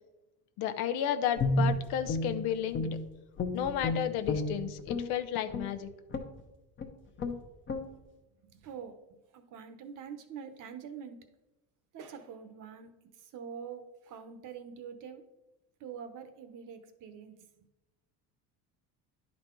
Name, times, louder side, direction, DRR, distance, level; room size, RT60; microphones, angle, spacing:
voice 1, 0.6-2.9 3.5-5.9, left 9 dB, 75° left, 9 dB, 0.8 m, -32 dB
Guitar, 1.4-3.1 3.4-5.1 5.5-5.7 6.1-6.4 6.8-6.9 7.2-7.4 7.7-7.9, left 2 dB, 30° left, 0.9 m, -31 dB
voice 2, 8.5-11.2 11.9-12.9 13.2-15.2 15.8-17.3, right 7 dB, 50° right, 8 dB, 1.0 m, -45 dB
10.5 x 4.1 x 4.5 m, 1.0 s
cardioid pair, 145°, 39 cm